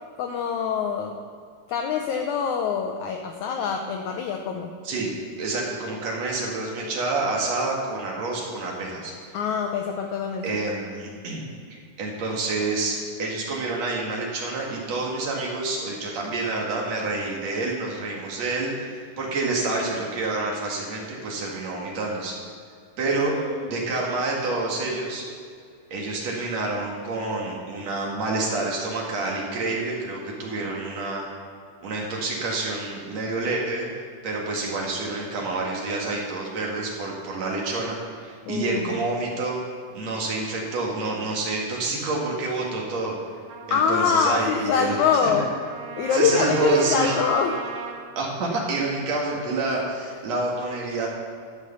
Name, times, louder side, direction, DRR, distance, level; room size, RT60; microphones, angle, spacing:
voice 1, 0.2-1.1 1.7-4.7 9.3-10.5 23.2-23.7 38.4-39.0 43.7-45.5 46.0-47.6, left 6 dB, 85° left, 3 dB, 1.7 m, -24 dB
voice 2, 4.8-9.1 10.4-22.4 23.0-25.2 25.9-31.2 31.8-33.9 34.2-39.6 39.9-43.2 43.7-45.0 45.2-45.3 46.1-47.1 48.2-51.1, right 3 dB, 50° right, -2 dB, 2.8 m, -28 dB
Trumpet, 43.5-48.0, right 6 dB, 75° right, 3.1 m, -38 dB
12.0 x 6.4 x 6.9 m, 2.2 s
omnidirectional pair, 4.2 m